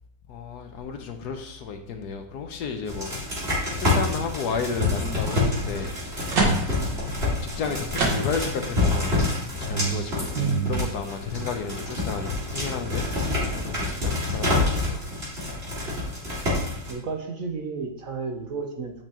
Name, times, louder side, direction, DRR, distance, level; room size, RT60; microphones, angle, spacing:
voice 1, 0.3-3.1 3.8-5.9 7.2-9.3 9.6-13.1 13.6-15.0, left 5 dB, 65° left, 5 dB, 1.3 m, -32 dB
sound 1, 2.9-16.9, left 2 dB, 35° right, 2.6 m, -27 dB
sound 2, 5.9-8.7 9.1-9.2 9.6-10.8, right 3 dB, 80° right, 2.2 m, -27 dB
voice 2, 16.9-19.0, right 4 dB, 55° right, 3 dB, 1.0 m, -32 dB
8.9 x 6.0 x 2.9 m, 0.74 s
omnidirectional pair, 1.9 m